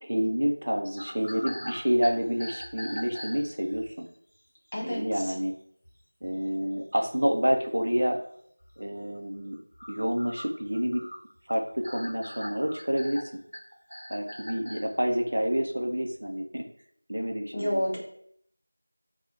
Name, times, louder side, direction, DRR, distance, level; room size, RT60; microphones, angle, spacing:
voice 1, 0.0-4.1 4.8-5.5 6.2-8.2 8.8-9.6 9.9-11.0 11.5-13.4 14.1-16.6 17.1-17.8, equal, 45° right, 3 dB, 0.4 m, -28 dB
sound 1, 1.0-3.9 4.7-4.8 5.1-5.3 5.8-5.9 6.2-6.8 7.4-7.5 7.7-7.8 8.6-8.7 9.2-14.9, equal, 85° left, 0.7 m, -42 dB
voice 2, 4.7-5.2 17.5-18.0, equal, 20° left, -5 dB, 0.5 m, -29 dB
2.3 x 2.0 x 3.8 m, 0.67 s
figure-of-eight pair, 180°, 0 cm